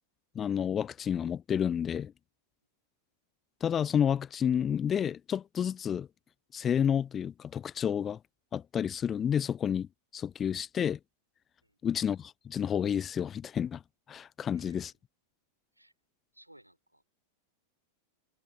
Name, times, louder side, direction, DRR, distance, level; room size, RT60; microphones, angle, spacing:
voice 1, 0.4-2.1 3.6-6.1 6.5-8.2 8.5-9.9 10.1-11.0 11.8-13.8 14.1-14.9, left 8 dB, 25° left, 0.4 m, -30 dB
voice 2, 14.4-14.9 15.7-15.9 16.3-17.0, right 1 dB, 90° right, 3.7 m, -59 dB
figure-of-eight pair, 90°, 0 cm